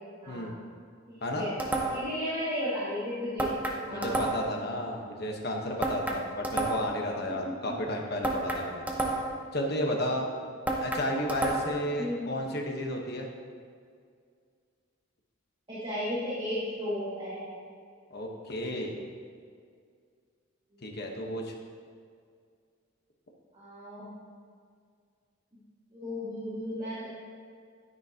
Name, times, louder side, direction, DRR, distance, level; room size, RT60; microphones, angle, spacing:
voice 1, 0.2-0.5 1.1-1.6 1.9-3.5 3.9-4.3 7.3-7.7 12.0-12.3 15.7-17.4 20.7-21.1 23.5-24.1 25.9-27.1, equal, 25° right, -11 dB, 2.1 m, -34 dB
sound 1, 1.6-2.2 3.4-4.6 5.8-7.0 8.2-9.5 10.7-11.9, right 2 dB, 10° right, 0.8 m, -31 dB
voice 2, 3.9-8.8 9.5-10.3 10.8-13.3 18.1-19.0 20.8-21.5, left 1 dB, 55° left, 1 dB, 1.2 m, -32 dB
10.0 x 9.7 x 2.9 m, 2.1 s
head